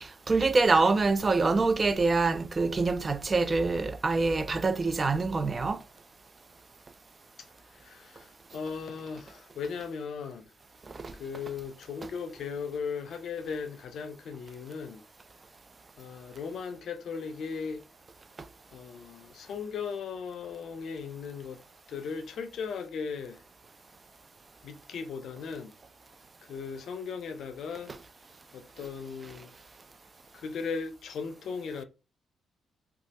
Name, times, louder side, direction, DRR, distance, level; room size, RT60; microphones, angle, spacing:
voice 1, 0.0-5.8 10.9-11.1 27.9-28.0, right 3 dB, 30° right, 0.4 m, -25 dB
voice 2, 7.7-10.5 11.2-15.0 16.0-17.8 18.7-21.6 21.9-23.4 24.6-25.7 26.5-27.9 28.5-29.5 30.3-31.8, left 5 dB, 70° left, 0.5 m, -37 dB
3.1 x 2.3 x 2.8 m
cardioid pair, 80°, 0 cm